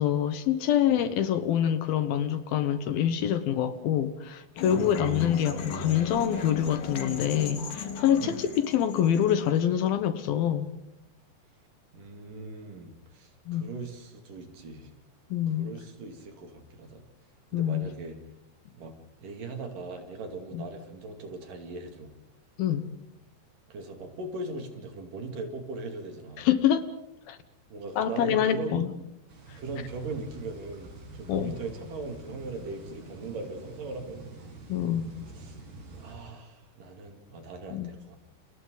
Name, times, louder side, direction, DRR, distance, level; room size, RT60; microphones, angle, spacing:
voice 1, 0.0-10.7 13.5-13.7 15.3-15.7 17.5-17.9 20.5-20.7 22.6-22.9 26.4-26.9 27.3-27.4 28.0-28.9 29.5-29.6 31.3-31.6 34.7-35.2 37.7-37.9, left 10 dB, 70° left, 11 dB, 2.7 m, -26 dB
sound 1, 4.6-9.6, left 4 dB, 55° left, 3.5 m, -37 dB
voice 2, 11.9-14.9 15.5-17.0 17.5-18.2 18.7-22.1 23.7-26.5 27.7-28.8 29.6-34.4 35.3-35.6 35.9-38.2, right 3 dB, 55° right, 4 dB, 4.0 m, -39 dB
sound 2, 29.3-36.2, right 3 dB, 75° right, 8.1 m, -46 dB
30.0 x 29.5 x 4.0 m, 0.85 s
omnidirectional pair, 4.8 m